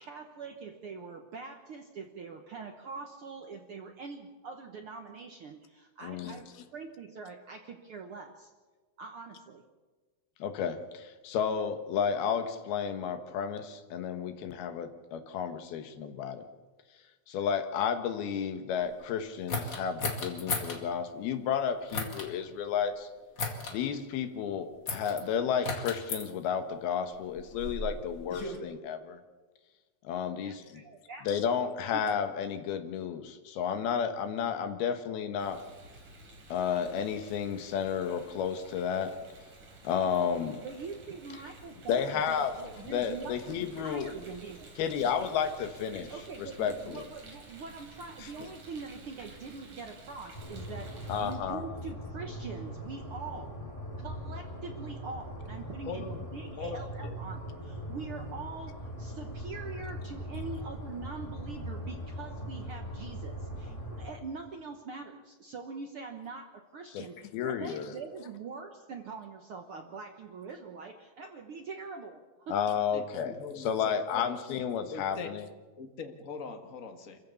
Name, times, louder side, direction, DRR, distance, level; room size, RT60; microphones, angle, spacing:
voice 1, 0.0-8.5 9.0-9.6 30.4-31.3 31.9-32.0 40.6-45.3 46.1-53.6 54.0-72.6, right 4 dB, 80° right, 4 dB, 1.2 m, -43 dB
voice 2, 6.0-6.4 10.4-16.4 17.3-23.1 23.7-29.2 30.0-30.8 31.3-35.6 36.5-39.1 39.8-40.6 41.9-42.5 42.9-44.1 44.8-46.1 46.6-47.0 51.1-51.6 66.9-67.1 67.3-67.9 72.5-75.5, left 7 dB, 90° left, 7 dB, 3.3 m, -32 dB
sound 1, 19.5-20.8 21.9-22.3 23.4-23.8 24.9-25.2 25.6-26.2 27.1-28.6, left 3 dB, 35° left, 2.4 m, -35 dB
Rain, 35.4-51.3, right 2 dB, 50° right, 5.2 m, -52 dB
sound 2, 50.3-64.1, equal, 10° left, 4.7 m, -40 dB
voice 3, 55.8-56.3 56.6-57.2 72.9-74.5 74.9-75.3 75.8-77.2, left 5 dB, 60° left, 5 dB, 0.8 m, -41 dB
26.5 x 15.0 x 7.1 m, 1.3 s
omnidirectional pair, 4.3 m